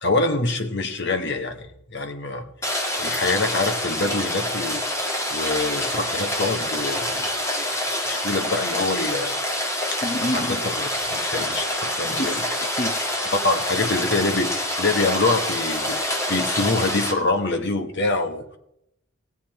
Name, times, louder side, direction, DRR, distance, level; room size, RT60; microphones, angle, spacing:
voice 1, 0.0-2.4 3.0-4.8 5.3-7.7 8.1-9.3 10.3-12.4 13.4-18.4, left 3 dB, 60° left, 5 dB, 1.5 m, -25 dB
Rain, 2.6-17.1, left 1 dB, 15° left, 1.8 m, -26 dB
voice 2, 10.0-10.6 12.1-12.4 12.8-13.1, left 1 dB, 45° left, 3 dB, 1.1 m, -28 dB
18.0 x 8.7 x 4.3 m, 0.76 s
head